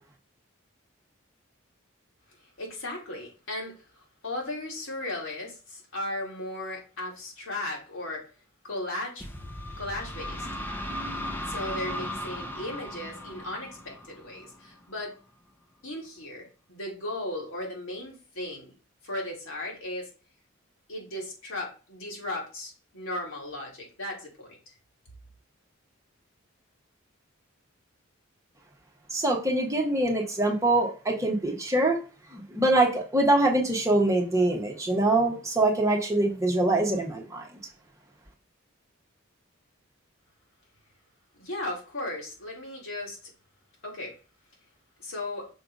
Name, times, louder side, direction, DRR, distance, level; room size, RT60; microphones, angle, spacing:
voice 1, 2.6-3.8 4.2-8.3 8.6-9.3 9.8-10.5 11.3-15.1 15.8-18.7 19.0-20.1 20.9-24.6 41.4-43.2 43.8-44.1 45.0-45.5, left 1 dB, 70° left, -2 dB, 2.8 m, -36 dB
sound 1, 9.2-14.8, equal, 10° left, 0.7 m, -36 dB
voice 2, 29.1-32.0 32.3-37.4, right 2 dB, 15° right, -1 dB, 1.3 m, -24 dB
6.2 x 3.3 x 5.3 m, 0.35 s
head